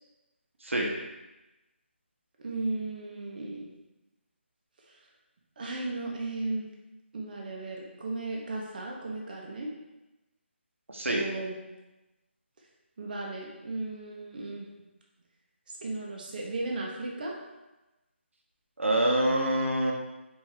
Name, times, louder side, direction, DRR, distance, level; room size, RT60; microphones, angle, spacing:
voice 1, 0.6-0.9 10.9-11.2 18.8-19.9, right 1 dB, 85° right, -1 dB, 0.9 m, -25 dB
voice 2, 2.4-3.7 4.8-5.0 5.6-6.7 7.1-9.7 11.1-11.6 13.0-14.7 15.8-17.3, right 2 dB, 45° right, -2 dB, 0.7 m, -35 dB
4.6 x 2.7 x 3.2 m, 1.0 s
figure-of-eight pair, 155°, 7 cm